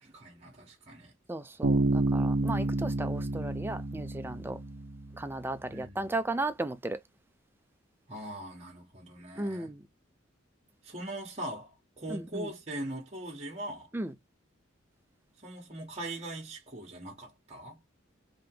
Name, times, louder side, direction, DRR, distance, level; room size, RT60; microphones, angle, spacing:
voice 1, 0.0-1.1 5.7-6.2 8.1-9.7 10.8-13.9 15.4-17.8, right 1 dB, 35° right, 1.2 m, -41 dB
voice 2, 1.3-4.6 5.2-7.0 9.4-9.8 12.1-12.5 13.9-14.1, right 2 dB, 10° right, 0.4 m, -35 dB
Bass guitar, 1.6-5.3, right 2 dB, 60° right, 0.7 m, -29 dB
3.6 x 2.8 x 3.7 m
head